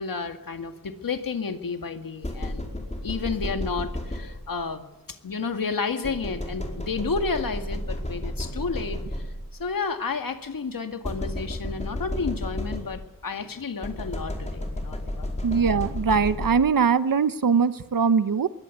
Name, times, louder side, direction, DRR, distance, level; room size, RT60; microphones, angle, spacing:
voice 1, 0.0-9.3 9.6-15.3, left 4 dB, 75° left, 6 dB, 2.1 m, -31 dB
sound 1, 2.2-4.7 6.0-9.6 11.0-13.2 13.8-16.9, left 1 dB, 20° left, 4.8 m, -32 dB
voice 2, 15.4-18.5, right 6 dB, 75° right, 13 dB, 1.1 m, -21 dB
21.5 x 17.5 x 8.3 m, 1.0 s
wide cardioid pair, 100°, 34 cm